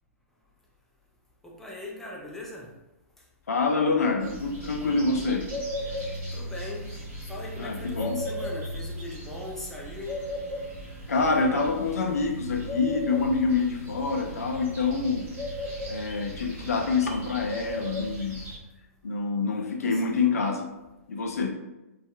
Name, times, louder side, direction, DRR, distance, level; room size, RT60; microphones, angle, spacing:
voice 1, 1.4-2.7 6.3-7.0 7.3-10.2 19.5-20.2, left 1 dB, 5° left, -3 dB, 0.5 m, -40 dB
voice 2, 3.5-5.5 7.6-8.2 11.1-15.3 15.8-18.5 19.0-20.7 21.1-21.5, left 4 dB, 80° left, 3 dB, 0.4 m, -26 dB
sound 1, 4.2-18.6, equal, 25° right, 0.9 m, -36 dB
2.5 x 2.4 x 2.2 m, 1.0 s
hypercardioid pair, 120°, 8 cm